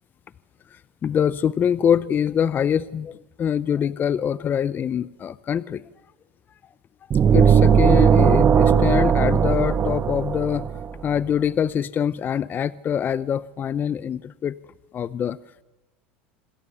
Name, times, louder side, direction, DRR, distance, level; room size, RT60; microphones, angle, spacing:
voice 1, 1.0-5.8 7.3-10.7 11.0-14.5 14.9-15.4, left 8 dB, 35° left, 17 dB, 0.7 m, -24 dB
sound 1, 7.1-10.9, right 7 dB, 35° right, 1.3 m, -17 dB
27.0 x 21.5 x 6.9 m, 1.1 s
hypercardioid pair, 95°, 6 cm